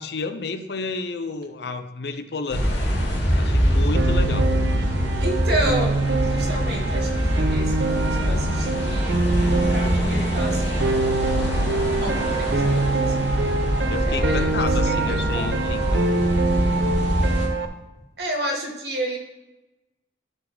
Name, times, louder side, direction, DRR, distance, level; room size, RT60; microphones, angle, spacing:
voice 1, 0.0-2.7 3.4-4.5 13.9-16.0, left 4 dB, 65° left, 9 dB, 0.6 m, -31 dB
sound 1, 2.5-17.5, equal, 80° left, 2.6 m, -24 dB
Piano, 3.9-17.7, right 3 dB, 75° right, 0.6 m, -25 dB
voice 2, 5.2-5.9 6.2-11.1 11.8-13.2 14.0-15.5 18.2-19.2, right 1 dB, 60° right, 1 dB, 1.6 m, -31 dB
11.5 x 4.1 x 4.6 m, 1.0 s
head